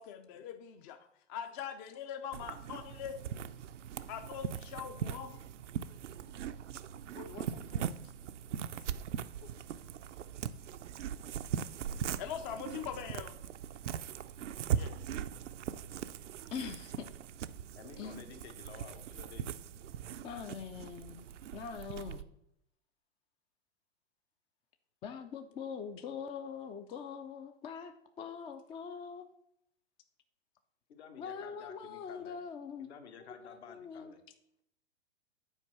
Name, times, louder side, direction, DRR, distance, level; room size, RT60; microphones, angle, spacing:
voice 1, 0.0-3.2 4.1-5.4 7.2-7.9 12.2-13.4 14.7-14.9, left 9 dB, 40° left, 0.7 m, -43 dB
sound 1, 2.3-22.2, right 9 dB, 80° right, 0.6 m, -40 dB
voice 2, 16.5-17.1 18.0-18.3 20.2-21.3 21.5-22.2 25.0-29.3 31.2-32.9 33.2-34.1, left 6 dB, 15° left, 0.4 m, -43 dB
voice 3, 17.7-19.5 30.9-32.4 32.8-34.2, left 7 dB, 65° left, 1.5 m, -52 dB
8.9 x 4.5 x 6.0 m
hypercardioid pair, 115°, 36 cm